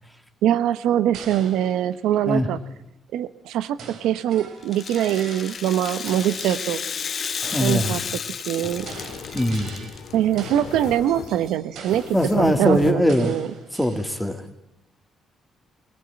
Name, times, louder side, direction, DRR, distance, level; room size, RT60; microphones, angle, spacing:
voice 1, 0.4-2.6 3.1-6.8 7.6-8.2 8.5-8.9 10.1-13.5, right 11 dB, 90° right, 15 dB, 1.0 m, -23 dB
sound 1, 1.1-2.6 3.8-5.8 6.1-6.6 7.4-10.1 10.4-12.4 13.1-14.5, right 5 dB, 75° right, 4.0 m, -42 dB
Rattle (instrument), 4.6-10.1, left 6 dB, 50° left, 1.5 m, -32 dB
voice 2, 7.5-7.9 9.3-9.9 12.1-13.3 13.8-14.4, equal, ahead, 6 dB, 2.7 m, -21 dB
sound 2, 7.7-12.9, left 7 dB, 75° left, 2.6 m, -38 dB
22.5 x 18.5 x 8.8 m, 0.88 s
cardioid pair, 90°, 0 cm